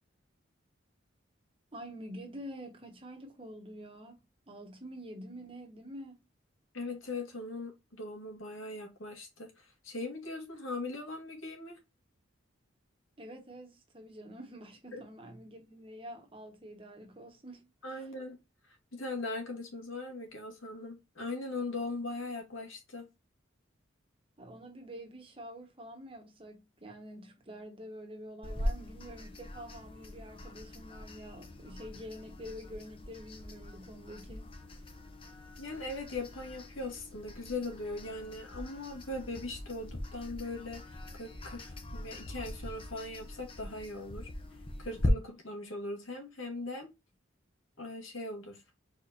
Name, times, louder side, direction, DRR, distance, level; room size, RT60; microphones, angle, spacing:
voice 1, 1.7-6.2 13.2-18.0 24.4-34.5 34.8-34.9, equal, 25° right, 1.3 m, -47 dB
voice 2, 6.7-11.8 14.9-15.0 17.8-23.1 35.6-44.3 44.8-46.9 47.8-48.6, left 2 dB, 80° left, 1.9 m, -40 dB
sound 1, 28.4-45.1, left 1 dB, 25° left, 0.8 m, -42 dB
4.5 x 4.3 x 2.7 m
head